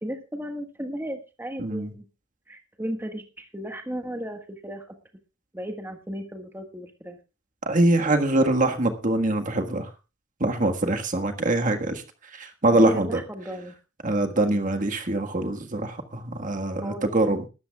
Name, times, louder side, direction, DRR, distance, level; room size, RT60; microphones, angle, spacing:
voice 1, 0.0-2.0 2.5-5.0 5.5-7.2 12.7-13.7 14.4-14.6 16.8-17.4, equal, 10° right, 4 dB, 1.5 m, -35 dB
voice 2, 1.6-1.9 7.6-9.9 10.4-12.0 12.3-13.2 14.0-17.5, right 2 dB, 40° right, 5 dB, 1.6 m, -24 dB
20.5 x 13.0 x 2.4 m, 0.30 s
head